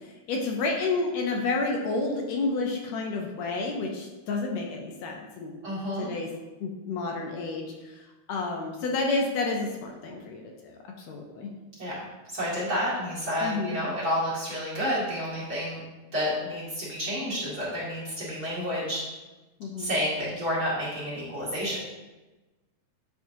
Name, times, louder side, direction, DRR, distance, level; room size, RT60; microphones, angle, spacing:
voice 1, 0.3-5.5 6.0-6.3 6.6-7.7 8.3-10.8 11.1-11.5 13.4-13.8 19.6-19.9, left 3 dB, 75° left, 1 dB, 1.9 m, -30 dB
voice 2, 5.6-6.1 11.8-12.0 12.3-15.8 16.1-19.0 19.8-21.8, equal, 35° right, -8 dB, 2.5 m, -30 dB
9.3 x 4.9 x 2.7 m, 1.1 s
omnidirectional pair, 3.4 m